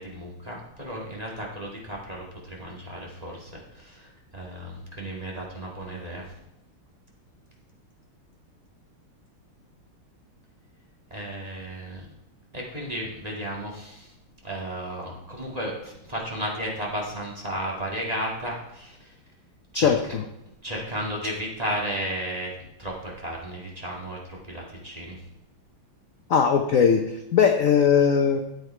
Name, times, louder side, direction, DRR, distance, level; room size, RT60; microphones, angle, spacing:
voice 1, 0.0-6.2 11.1-12.0 12.5-14.1 14.4-19.1 19.7-19.9 20.6-22.5 22.8-25.2, equal, 20° right, -3 dB, 2.3 m, -34 dB
voice 2, 19.7-20.2 26.3-28.4, left 7 dB, 60° left, 4 dB, 0.9 m, -20 dB
13.5 x 8.1 x 4.5 m, 0.87 s
omnidirectional pair, 2.4 m